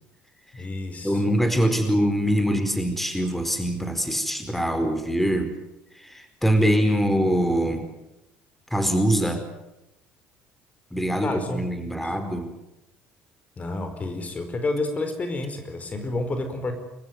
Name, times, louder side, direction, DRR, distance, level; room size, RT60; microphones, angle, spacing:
voice 1, 0.5-1.2 11.2-11.6 12.0-12.1 13.6-16.7, left 2 dB, 30° left, 8 dB, 4.7 m, -29 dB
voice 2, 1.0-5.5 5.9-7.9 8.7-9.4 10.9-12.5, equal, 5° left, 8 dB, 4.6 m, -23 dB
28.0 x 15.0 x 9.6 m, 0.91 s
supercardioid pair, 75°, 5 cm